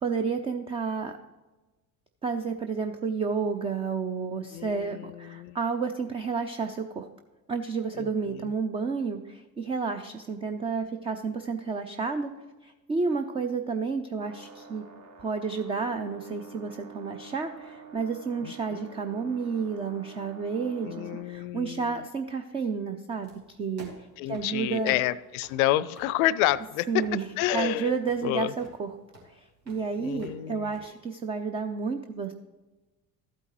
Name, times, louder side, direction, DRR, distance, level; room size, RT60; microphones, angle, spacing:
voice 1, 0.0-1.2 2.2-7.1 7.5-12.3 12.6-14.8 15.2-23.9 24.2-25.0 26.9-27.3 27.5-28.9 29.2-32.3, right 5 dB, 15° right, 7 dB, 0.3 m, -31 dB
voice 2, 4.5-5.5 8.0-8.4 18.4-18.9 20.8-22.0 24.2-27.0 27.4-28.0 28.2-28.5 30.0-30.7, left 14 dB, 60° left, 19 dB, 0.5 m, -29 dB
sound 1, 14.2-21.2, right 5 dB, 35° right, 1.4 m, -48 dB
sound 2, 23.2-30.8, right 1 dB, 80° right, 2.6 m, -51 dB
14.0 x 8.7 x 3.0 m, 1.2 s
figure-of-eight pair, 65°, 48 cm